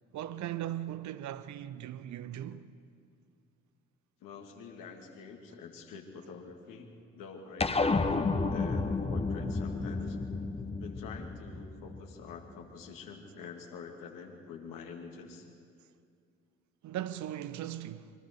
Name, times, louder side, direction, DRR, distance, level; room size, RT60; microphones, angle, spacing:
voice 1, 0.1-2.7 16.8-18.1, right 12 dB, 45° right, 0.9 m, -38 dB
voice 2, 4.2-10.2 10.8-15.5, left 5 dB, 55° left, 2.7 m, -47 dB
sound 1, 7.6-12.3, left 3 dB, 15° left, 1.2 m, -31 dB
24.5 x 24.0 x 4.7 m
figure-of-eight pair, 45°, 39 cm